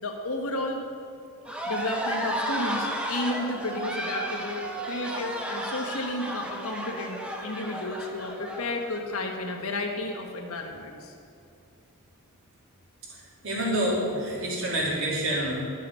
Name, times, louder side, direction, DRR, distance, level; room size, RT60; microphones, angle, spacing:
voice 1, 0.0-0.8 1.7-11.1, left 2 dB, 70° left, 2 dB, 1.4 m, -32 dB
sound 1, 1.4-9.0, right 1 dB, 5° right, 0.9 m, -33 dB
voice 2, 13.4-15.6, right 1 dB, 60° right, -4 dB, 3.1 m, -27 dB
12.0 x 6.7 x 6.9 m, 2.5 s
head